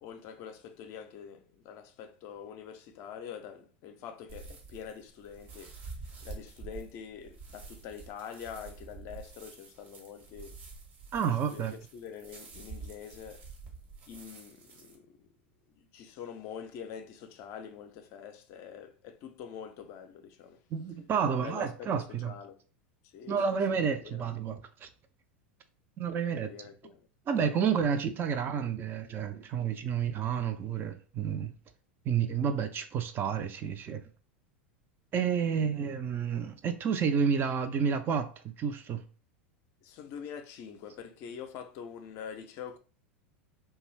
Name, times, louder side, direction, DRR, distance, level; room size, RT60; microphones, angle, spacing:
voice 1, 0.0-5.7 6.2-10.6 11.5-13.4 14.1-15.2 15.7-20.6 21.2-22.6 23.1-24.2 26.3-27.1 39.8-42.8, left 7 dB, 45° left, 0.4 m, -45 dB
sound 1, 4.3-14.9, right 4 dB, 60° right, 1.0 m, -48 dB
voice 2, 11.1-11.7 20.7-22.3 23.3-24.9 26.0-26.5 27.3-31.5 32.1-34.0 35.1-39.0, right 7 dB, 35° right, 0.4 m, -30 dB
2.5 x 2.3 x 3.1 m
hypercardioid pair, 90°, 6 cm